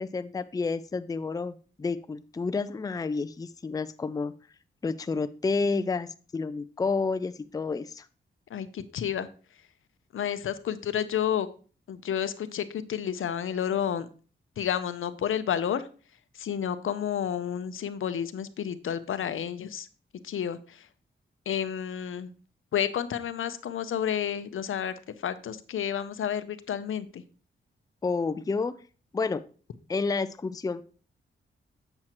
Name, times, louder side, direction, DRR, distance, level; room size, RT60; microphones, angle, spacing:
voice 1, 0.0-4.3 4.8-8.1 28.0-28.8 29.1-29.4 29.9-30.8, left 4 dB, 20° left, 12 dB, 0.4 m, -30 dB
voice 2, 8.5-9.3 10.1-11.5 11.9-14.1 14.6-15.9 16.3-19.9 20.2-20.9 21.5-22.3 22.7-27.2, left 9 dB, 80° left, 13 dB, 0.6 m, -30 dB
7.8 x 7.3 x 3.0 m, 0.38 s
cardioid pair, 85°, 21 cm